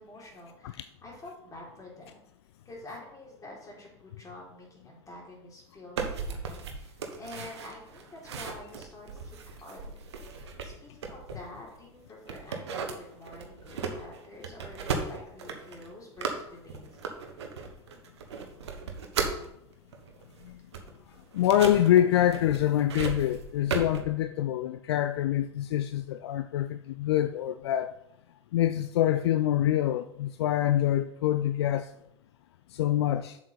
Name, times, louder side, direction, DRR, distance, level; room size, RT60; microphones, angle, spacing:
voice 1, 0.0-2.2 2.7-17.0, left 2 dB, 25° left, 3.7 m, -48 dB
sound 1, 6.0-11.8 12.3-19.5 19.9-24.0, right 5 dB, 70° right, 1.2 m, -36 dB
voice 2, 21.3-27.9 28.5-31.9 32.7-33.4, left 12 dB, 65° left, 0.4 m, -25 dB
7.4 x 7.2 x 4.1 m
figure-of-eight pair, 75°, 15 cm